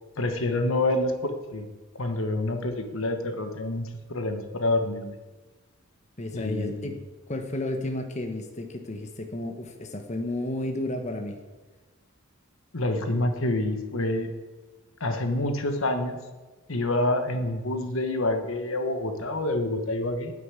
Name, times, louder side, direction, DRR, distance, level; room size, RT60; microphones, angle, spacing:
voice 1, 0.2-1.7 2.0-5.2 6.3-7.0 12.7-14.3 15.0-16.2 16.7-20.3, left 2 dB, 70° left, 6 dB, 1.3 m, -27 dB
voice 2, 6.2-7.0 7.3-11.4, left 1 dB, 35° left, 4 dB, 1.2 m, -32 dB
9.6 x 9.3 x 8.2 m, 1.2 s
head